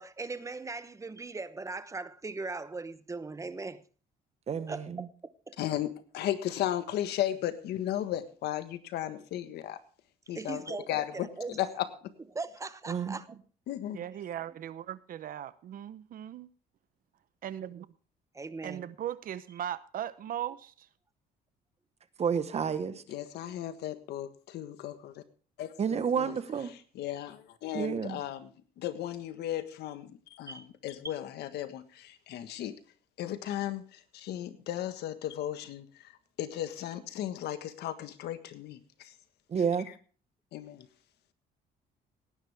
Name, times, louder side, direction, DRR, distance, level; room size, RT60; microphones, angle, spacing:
voice 1, 0.0-3.8 4.7-5.6 10.3-11.6 12.3-13.3 18.3-18.9 30.5-30.7 31.0-31.1, right 3 dB, 20° right, 0.9 m, -39 dB
voice 2, 4.5-5.1 12.9-13.2 22.2-23.0 25.8-26.7 27.7-28.2 39.5-39.9, right 7 dB, 40° right, 1.2 m, -30 dB
voice 3, 5.6-9.8 10.3-12.1 13.7-14.0 23.1-25.2 25.6-26.3 26.9-28.5 28.8-32.7 33.2-39.1 40.5-40.9, left 12 dB, 75° left, 1.5 m, -35 dB
voice 4, 13.9-16.5 17.4-17.9 18.6-20.9, right 10 dB, 55° right, 0.8 m, -38 dB
18.0 x 10.5 x 3.5 m
cardioid pair, 110°, 17 cm